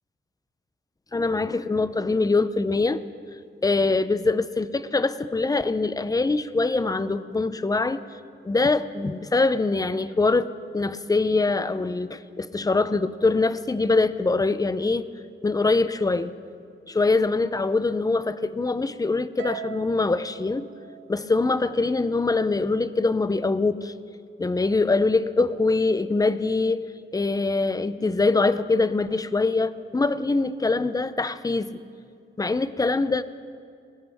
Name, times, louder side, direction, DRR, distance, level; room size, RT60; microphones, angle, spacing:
voice 1, 1.1-3.0 3.6-8.0 8.4-15.1 15.4-16.3 16.9-20.7 21.1-23.9 24.4-26.9 27.1-31.8 32.4-33.2, left 3 dB, 20° left, 14 dB, 0.6 m, -23 dB
Harp, 19.4-21.9, right 11 dB, 90° right, 0.5 m, -41 dB
21.0 x 17.5 x 3.5 m, 2.3 s
cardioid pair, 90°, 20 cm